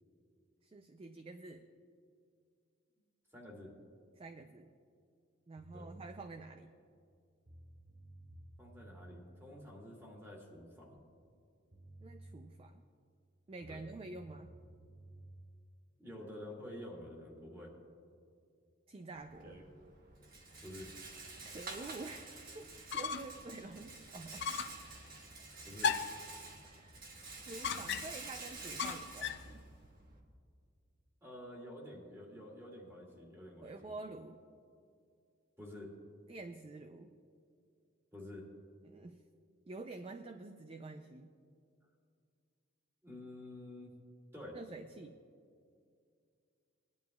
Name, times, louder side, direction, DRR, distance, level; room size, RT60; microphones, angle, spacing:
voice 1, 0.6-1.7 4.2-4.7 5.5-6.7 12.0-12.8 13.5-14.5 18.9-19.6 21.4-24.5 26.6-27.0 27.4-29.6 33.6-34.4 36.3-37.1 38.8-39.2 39.7-41.3 44.5-45.1, right 3 dB, 30° right, 7 dB, 0.4 m, -48 dB
voice 2, 3.3-3.7 5.7-5.9 8.6-11.0 13.7-13.8 16.0-17.7 20.6-20.9 25.6-26.0 31.2-33.9 35.6-35.9 38.1-38.5 43.0-43.9 44.3-44.6, left 1 dB, 15° right, -1 dB, 2.1 m, -49 dB
sound 1, 5.6-6.1 7.1-7.2 7.4-9.1 11.3-11.4 11.7-12.4 13.6-15.4, right 1 dB, 80° right, 2.9 m, -54 dB
Rattle, 19.1-30.2, right 3 dB, 45° right, 1.3 m, -49 dB
sound 2, 22.7-23.4 23.8-23.9 24.4-24.8 25.8-26.3 27.6-28.3 28.8-29.5, left 6 dB, 60° left, 0.5 m, -36 dB
20.5 x 11.0 x 2.3 m, 2.3 s
head